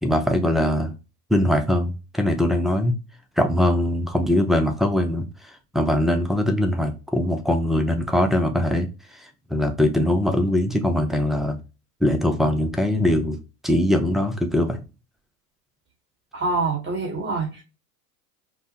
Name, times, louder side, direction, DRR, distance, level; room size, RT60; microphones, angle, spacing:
voice 1, 0.0-0.9 1.3-3.0 3.4-5.3 5.7-8.9 9.1-11.6 12.0-13.4 13.6-14.8, left 1 dB, ahead, 0.3 m, -21 dB
voice 2, 16.3-17.6, right 3 dB, 25° right, 1.6 m, -25 dB
5.3 x 2.0 x 2.8 m
hypercardioid pair, 90°, 47 cm